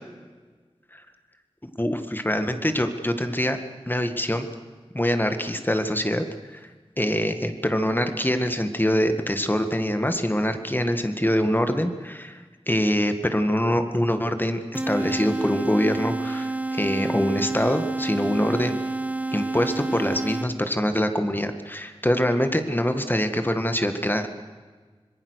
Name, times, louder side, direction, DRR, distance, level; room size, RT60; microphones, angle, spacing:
voice 1, 1.6-3.6 3.9-4.5 4.9-6.3 6.5-6.6 7.0-12.4 12.7-18.8 19.3-24.3, equal, 20° left, 8 dB, 2.0 m, -24 dB
sound 1, 14.7-20.8, right 2 dB, 15° right, 0.9 m, -29 dB
26.0 x 21.0 x 6.6 m, 1.4 s
wide cardioid pair, 60°, 10 cm